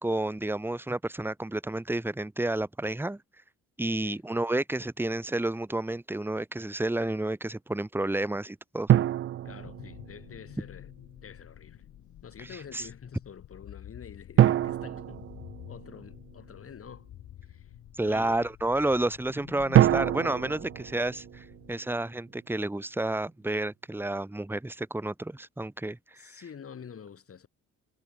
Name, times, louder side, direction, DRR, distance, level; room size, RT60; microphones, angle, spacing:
voice 1, 0.0-3.2 3.8-8.9 12.4-12.9 18.0-26.4, right 2 dB, 5° right, 1.6 m, -30 dB
voice 2, 3.8-4.2 9.4-10.9 11.2-11.8 12.2-15.3 15.7-17.1 17.4-17.7 18.0-18.5 26.1-27.5, left 7 dB, 50° left, 7.4 m, -47 dB
sound 1, 8.9-10.5 14.4-16.3 19.7-22.0, right 12 dB, 45° right, 0.4 m, -25 dB
sound 2, 9.4-21.8, left 12 dB, 75° left, 6.1 m, -49 dB
cardioid pair, 90°, 30 cm